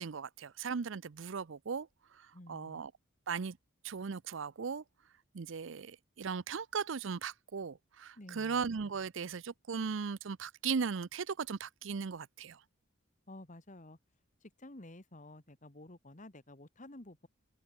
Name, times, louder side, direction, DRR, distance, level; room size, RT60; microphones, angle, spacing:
voice 1, 0.0-1.9 2.1-2.9 3.3-3.6 3.8-4.8 5.3-12.6, right 5 dB, 65° right, 0.5 m, -37 dB
voice 2, 2.3-2.8 8.2-8.6 13.3-14.0 14.4-17.3, left 1 dB, 35° left, 2.0 m, -52 dB
head